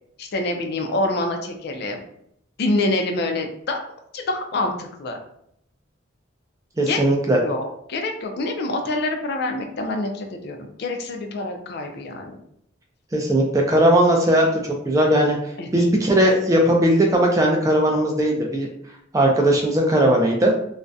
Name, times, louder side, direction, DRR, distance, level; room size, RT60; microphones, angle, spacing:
voice 1, 0.2-2.0 2.6-3.8 4.1-5.2 6.9-7.0 7.4-12.4 15.6-15.9, left 2 dB, 55° left, 3 dB, 0.4 m, -26 dB
voice 2, 6.8-7.4 13.1-14.6 14.9-15.4 15.7-18.7 19.1-20.5, right 1 dB, 15° right, 0 dB, 0.3 m, -18 dB
2.3 x 2.1 x 2.6 m, 0.73 s
head